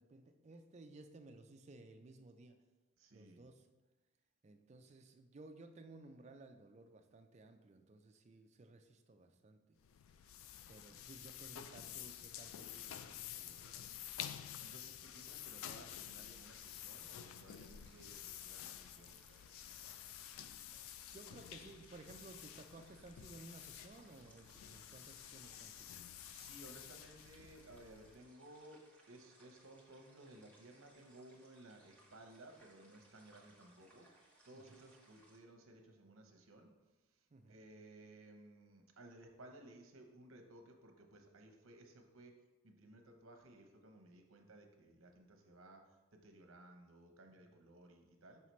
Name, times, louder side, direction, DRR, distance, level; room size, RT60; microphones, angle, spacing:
voice 1, 0.0-2.6 3.1-3.7 4.4-9.8 10.7-14.0 21.1-25.9 33.4-33.5 34.5-34.8 37.3-37.6 47.4-47.5, right 2 dB, 30° right, 6 dB, 0.4 m, -57 dB
voice 2, 3.0-3.4 10.5-10.7 14.6-20.0 26.3-34.1 34.4-36.7 37.5-42.3 42.6-45.8 46.1-48.4, right 1 dB, 75° right, 4 dB, 0.8 m, -59 dB
sound 1, 9.8-28.3, left 10 dB, 75° left, 0.3 m, -51 dB
sound 2, 15.9-35.4, right 1 dB, 5° left, 0.9 m, -68 dB
5.7 x 5.6 x 3.1 m, 1.1 s
head